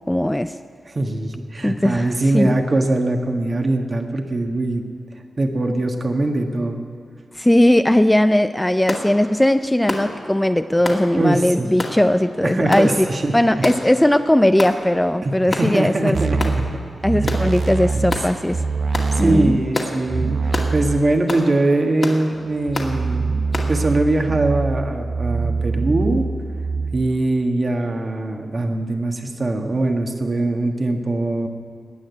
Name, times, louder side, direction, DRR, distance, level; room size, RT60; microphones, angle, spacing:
voice 1, 0.1-0.6 1.6-2.6 7.4-13.1 13.3-16.2 17.0-18.6 19.2-19.6, left 1 dB, 10° left, 10 dB, 0.5 m, -18 dB
voice 2, 0.9-4.8 5.4-6.8 11.1-11.7 12.4-13.7 15.2-16.4 17.2-17.3 19.1-26.2 26.9-31.5, right 2 dB, 45° right, 3 dB, 1.6 m, -22 dB
sound 1, 8.9-9.1 9.9-10.1 10.8-11.0 11.8-12.0 12.7-12.9 13.6-13.9 14.6-14.8 15.5-15.7 16.4-16.6 17.3-17.5 18.1-18.3 18.9-19.1 19.7-19.9 20.5-20.7 21.3-21.5 22.0-22.2 22.7-22.9 23.5-23.7, left 2 dB, 45° left, 2.4 m, -26 dB
sound 2, 16.1-19.6 20.0-21.1 22.7-27.2, right 4 dB, 65° right, 0.7 m, -24 dB
18.5 x 6.5 x 9.7 m, 2.4 s
cardioid pair, 50°, 0 cm